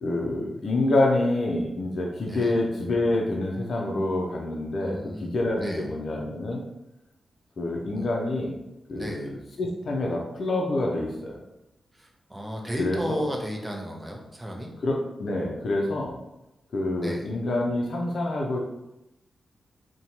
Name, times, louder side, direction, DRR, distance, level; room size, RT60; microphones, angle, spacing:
voice 1, 0.0-6.6 7.6-8.6 8.9-11.4 12.8-13.3 14.8-16.2 16.7-18.6, left 2 dB, 65° left, -1 dB, 0.4 m, -27 dB
voice 2, 2.3-2.6 4.8-5.9 7.9-8.1 8.9-9.3 12.0-14.7 17.0-17.2, equal, 20° right, 0 dB, 0.7 m, -34 dB
2.6 x 2.2 x 2.8 m, 0.91 s
supercardioid pair, 45°, 0 cm